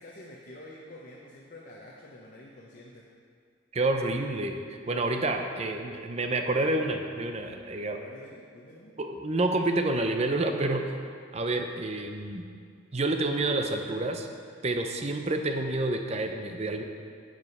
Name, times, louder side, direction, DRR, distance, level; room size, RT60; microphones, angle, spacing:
voice 1, 0.0-3.0 7.9-8.9, left 1 dB, 45° left, -3 dB, 0.8 m, -48 dB
voice 2, 3.7-8.0 9.0-10.8 11.3-12.5 12.9-14.3 14.6-16.8, right 2 dB, 30° right, 5 dB, 0.6 m, -28 dB
10.5 x 4.9 x 5.4 m, 2.2 s
head